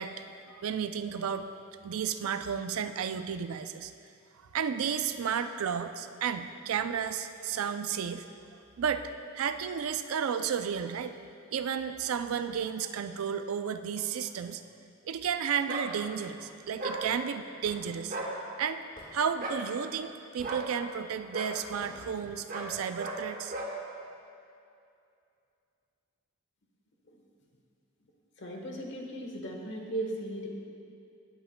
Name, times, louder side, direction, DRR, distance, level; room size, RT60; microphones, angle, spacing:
voice 1, 0.0-1.5 1.8-3.9 4.5-8.3 8.8-11.1 11.5-14.6 15.0-18.2 18.6-18.8 19.1-23.5, right 7 dB, 70° right, 9 dB, 0.4 m, -32 dB
sound 1, 15.7-15.9 16.8-17.0 18.0-18.3 19.4-19.6 20.4-20.7 21.3-21.5 22.5-22.7 23.0-23.2 23.5-23.7, right 2 dB, 40° right, 1.0 m, -36 dB
Hammer / Wood, 17.6-17.8 19.0-19.1 20.4-20.7 21.8-22.0, left 1 dB, 40° left, 1.7 m, -49 dB
voice 2, 28.4-30.5, right 1 dB, 55° left, 1 dB, 1.2 m, -37 dB
16.5 x 8.0 x 2.2 m, 2.5 s
head